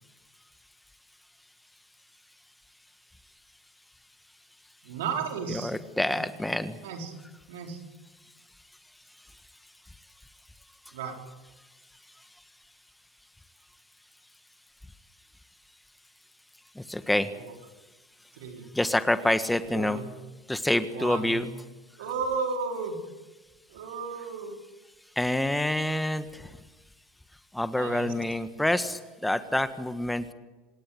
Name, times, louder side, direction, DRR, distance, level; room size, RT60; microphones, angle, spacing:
voice 1, 4.8-5.7 6.1-6.2 6.8-7.1 7.5-7.8 10.9-11.2 17.3-17.5 18.3-18.7 19.7-20.1 20.9-21.4 22.0-23.0 23.7-24.6 27.7-28.1, right 5 dB, 70° right, 3 dB, 4.8 m, -34 dB
voice 2, 5.5-6.8 16.7-17.3 18.7-20.0 20.5-21.5 25.1-26.6 27.5-30.3, left 1 dB, 5° left, 11 dB, 1.6 m, -27 dB
28.0 x 18.5 x 8.1 m, 1.2 s
hypercardioid pair, 75°, 0 cm